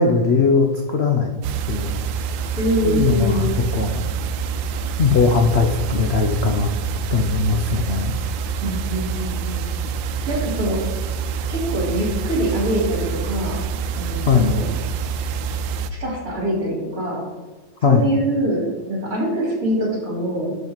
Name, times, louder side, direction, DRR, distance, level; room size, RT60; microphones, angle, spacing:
voice 1, 0.0-1.4 1.7-2.0 2.3-2.5 2.8-3.5 3.7-4.0 5.0-6.7 7.1-8.1 14.3-14.6 17.8-18.1, left 5 dB, 55° left, 3 dB, 0.7 m, -19 dB
sound 1, 1.4-15.9, right 6 dB, 90° right, 1.4 m, -26 dB
voice 2, 2.5-3.5 8.6-9.7 10.0-10.9 11.5-13.6 13.9-14.7 15.9-17.2 17.8-20.6, right 1 dB, 45° right, -3 dB, 3.6 m, -24 dB
11.5 x 5.7 x 4.4 m, 1.2 s
omnidirectional pair, 2.0 m